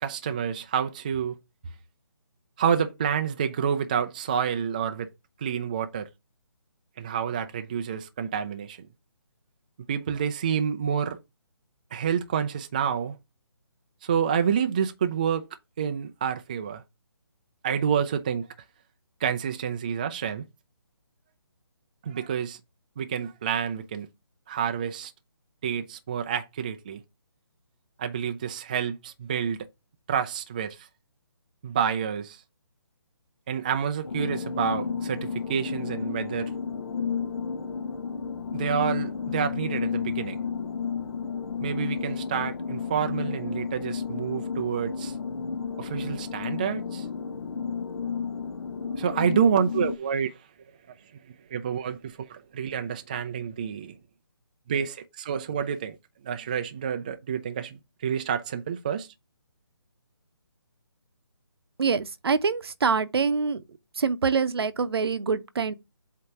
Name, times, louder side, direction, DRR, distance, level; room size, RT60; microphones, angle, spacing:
voice 1, 0.0-1.4 2.6-5.1 5.4-6.1 7.0-8.8 9.9-11.2 11.9-13.2 14.0-15.5 15.8-16.8 17.6-18.5 19.2-20.4 22.0-22.6 23.0-24.1 24.5-25.1 25.6-27.0 28.0-29.7 30.1-30.9 31.6-32.4 33.5-36.5 38.5-40.4 41.6-45.2 45.8-47.1 49.0-50.3 51.5-53.9 54.7-56.0 56.2-59.1, right 7 dB, 20° right, 0.3 m, -28 dB
sound 1, 34.0-50.0, left 6 dB, 70° left, 1.0 m, -32 dB
voice 2, 61.8-63.6 64.0-65.7, right 5 dB, 65° right, 0.8 m, -25 dB
7.8 x 2.8 x 4.7 m
hypercardioid pair, 160°, 14 cm